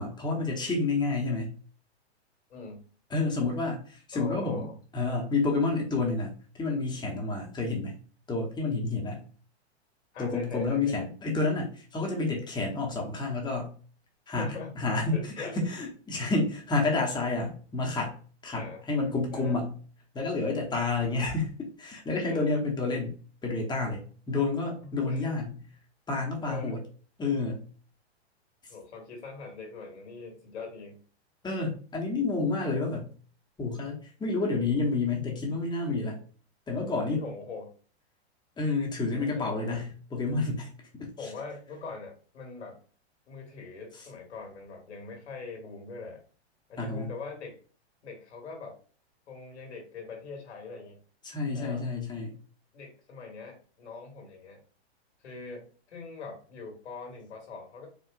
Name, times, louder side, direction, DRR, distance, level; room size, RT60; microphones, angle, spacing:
voice 1, 0.0-1.5 3.1-4.7 4.9-8.0 8.3-9.2 10.2-13.7 14.3-19.7 20.1-23.2 23.4-25.5 26.1-26.8 27.2-27.7 31.4-33.1 33.6-36.2 36.7-37.2 38.6-41.3 46.8-47.1 51.2-52.3, left 3 dB, 15° left, 0 dB, 1.0 m, -29 dB
voice 2, 2.5-2.8 4.1-4.8 10.1-11.1 14.3-15.7 18.5-18.8 19.3-19.6 21.0-21.3 22.3-22.5 24.8-25.4 26.5-26.8 28.7-31.0 36.8-37.7 39.2-39.8 41.2-42.8 43.3-46.2 46.7-47.6 48.0-48.8 49.3-51.0 51.5-51.8 52.7-54.6 55.2-57.9, left 4 dB, 80° left, 2 dB, 1.8 m, -42 dB
4.7 x 2.4 x 2.5 m, 0.40 s
hypercardioid pair, 125°, 33 cm